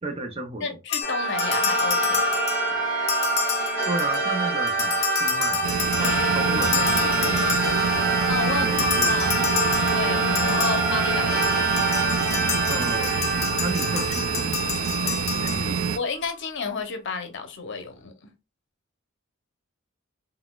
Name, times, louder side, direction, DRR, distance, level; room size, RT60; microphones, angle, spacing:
voice 1, 0.0-0.8 3.9-7.4 8.6-9.3 10.6-10.7 12.7-13.3 13.6-14.7 15.0-15.9, right 2 dB, 30° right, 0.5 m, -33 dB
voice 2, 0.6-2.4 2.7-2.8 8.3-9.4 9.8-11.7 16.0-18.3, left 4 dB, 60° left, 0.7 m, -31 dB
sound 1, 0.9-4.4 4.7-8.1 8.8-16.1, left 8 dB, 30° left, 0.4 m, -29 dB
sound 2, 1.0-14.8, right 3 dB, 10° right, 1.2 m, -26 dB
sound 3, 5.6-16.0, right 7 dB, 80° right, 0.3 m, -27 dB
4.0 x 2.3 x 2.2 m
head